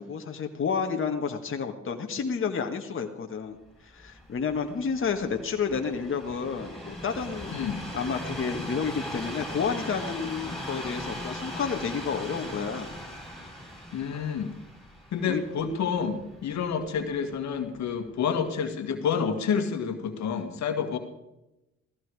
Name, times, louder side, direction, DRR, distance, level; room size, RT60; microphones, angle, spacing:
voice 1, 0.0-3.6 3.8-7.6 7.9-12.9 15.3-15.4, left 6 dB, 45° left, 4 dB, 1.7 m, -30 dB
Train, 3.9-17.1 17.7-17.9, equal, ahead, 8.0 m, -39 dB
voice 2, 7.5-7.8 13.9-14.5 15.1-21.0, left 6 dB, 65° left, 7 dB, 2.0 m, -29 dB
16.0 x 15.0 x 4.9 m, 0.93 s
supercardioid pair, 60°, 30 cm